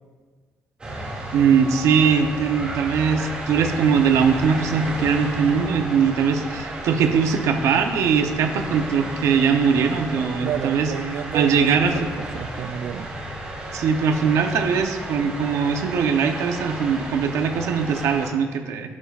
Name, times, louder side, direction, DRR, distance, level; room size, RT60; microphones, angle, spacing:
sound 1, 0.8-18.3, right 1 dB, 20° right, 2.3 m, -33 dB
voice 1, 1.3-10.9 11.3-12.1 13.7-19.0, right 6 dB, 90° right, 6 dB, 0.8 m, -21 dB
voice 2, 10.4-13.1, right 9 dB, 70° right, 13 dB, 0.4 m, -30 dB
11.5 x 11.0 x 2.5 m, 1.5 s
cardioid pair, 175°, 5 cm